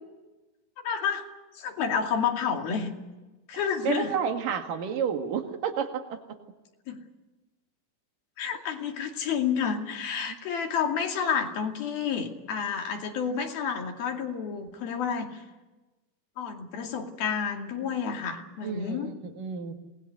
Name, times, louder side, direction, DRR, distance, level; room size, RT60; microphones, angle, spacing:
voice 1, 0.8-1.3 1.6-2.9 3.5-4.1 6.9-7.0 8.4-15.4 16.4-19.1, left 7 dB, 85° left, 2 dB, 4.4 m, -30 dB
voice 2, 3.8-6.2 18.6-19.7, right 7 dB, 70° right, 5 dB, 3.5 m, -30 dB
26.5 x 20.0 x 8.1 m, 1.1 s
omnidirectional pair, 4.1 m